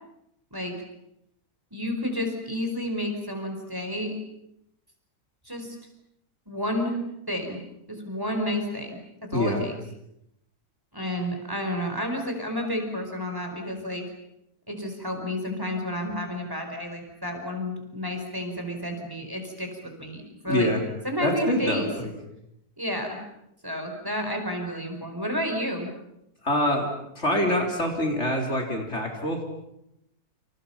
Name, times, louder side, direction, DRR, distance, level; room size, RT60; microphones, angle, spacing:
voice 1, 1.7-4.1 5.4-5.8 6.5-7.0 7.3-7.6 7.9-9.8 10.9-14.0 14.7-20.7 21.0-21.9 22.8-23.2 23.6-25.9, equal, 15° right, 3 dB, 4.8 m, -31 dB
voice 2, 20.5-20.8 21.2-22.1 26.4-26.9 27.2-29.4, left 1 dB, 45° left, 2 dB, 4.1 m, -25 dB
29.0 x 27.5 x 5.8 m, 0.81 s
omnidirectional pair, 1.6 m